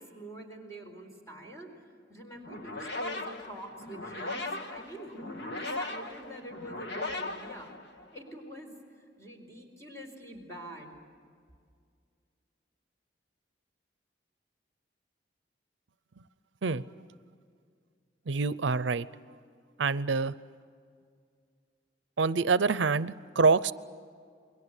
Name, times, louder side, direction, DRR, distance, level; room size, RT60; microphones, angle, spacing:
voice 1, 0.0-1.7 2.1-7.7 8.1-8.7 9.2-10.9, right 1 dB, 15° left, 2 dB, 4.4 m, -45 dB
sound 1, 2.4-8.3, left 2 dB, 65° left, 1.8 m, -38 dB
voice 2, 18.3-19.1 19.8-20.3 22.2-23.7, right 4 dB, 80° right, 16 dB, 0.6 m, -26 dB
29.0 x 22.0 x 8.1 m, 2.2 s
head